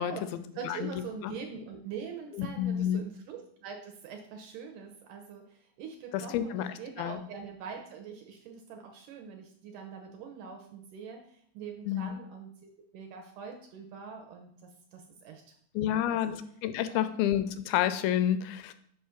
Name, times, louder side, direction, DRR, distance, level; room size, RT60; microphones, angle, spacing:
voice 1, 0.0-0.9 1.2-1.3 2.3-3.0 6.1-6.7 7.0-7.2 11.9-12.1 15.8-18.7, left 11 dB, 85° left, 11 dB, 2.3 m, -29 dB
voice 2, 0.5-15.4 15.9-16.4 16.9-17.1, right 6 dB, 75° right, 3 dB, 2.0 m, -43 dB
5.7 x 4.9 x 5.6 m, 0.65 s
omnidirectional pair, 4.2 m